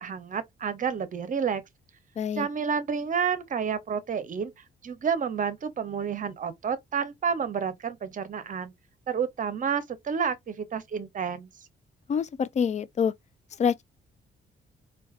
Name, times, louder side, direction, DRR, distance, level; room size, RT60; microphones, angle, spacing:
voice 1, 0.0-1.6 2.4-4.5 4.8-8.7 9.1-11.5, right 6 dB, 40° right, 0.7 m, -30 dB
voice 2, 2.2-2.5 12.1-13.1 13.6-13.8, left 7 dB, 35° left, 0.4 m, -26 dB
3.9 x 2.3 x 2.4 m
cardioid pair, 90°, 20 cm